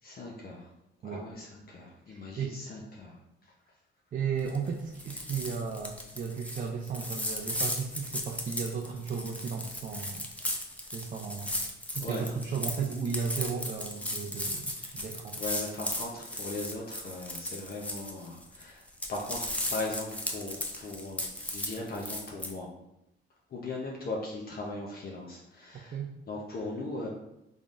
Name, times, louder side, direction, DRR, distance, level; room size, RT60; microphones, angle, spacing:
voice 1, 0.0-0.7 1.0-3.2 12.0-12.3 14.8-14.9 15.4-18.8 19.1-21.2 21.5-22.7 23.5-26.0 26.3-27.1, left 2 dB, 50° left, -2 dB, 0.7 m, -38 dB
voice 2, 2.1-2.6 4.1-10.3 10.9-11.5 11.9-15.4 25.9-26.1, right 6 dB, 40° right, 0 dB, 0.4 m, -35 dB
sound 1, 4.4-4.7 4.9-18.6 18.9-22.5, left 1 dB, 5° left, 0.6 m, -36 dB
3.8 x 3.5 x 2.5 m, 0.87 s
cardioid pair, 90°, 20 cm